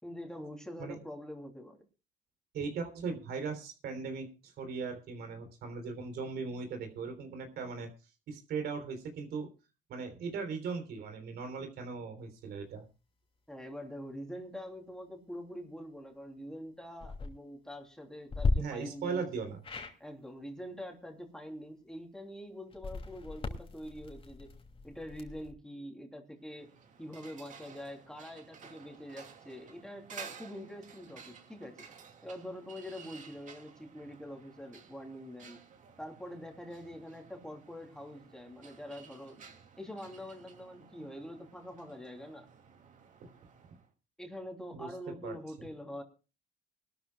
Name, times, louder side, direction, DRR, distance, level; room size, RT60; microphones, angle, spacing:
voice 1, 0.0-1.8 13.5-19.2 20.0-24.5 24.8-26.7 27.0-31.9 32.2-35.6 36.0-39.4 39.8-42.5 44.2-46.0, equal, 5° left, 3 dB, 3.2 m, -45 dB
voice 2, 2.5-7.9 8.3-9.5 9.9-12.9 18.6-19.6 43.2-43.3 44.7-45.4, right 5 dB, 70° right, 7 dB, 3.6 m, -38 dB
sound 1, 16.9-17.3 18.3-18.5 19.6-19.9 22.7-25.5, left 3 dB, 30° left, 2.8 m, -36 dB
sound 2, 26.4-43.9, right 6 dB, 50° right, 2.7 m, -54 dB
24.5 x 13.0 x 2.3 m, 0.32 s
cardioid pair, 110°, 17 cm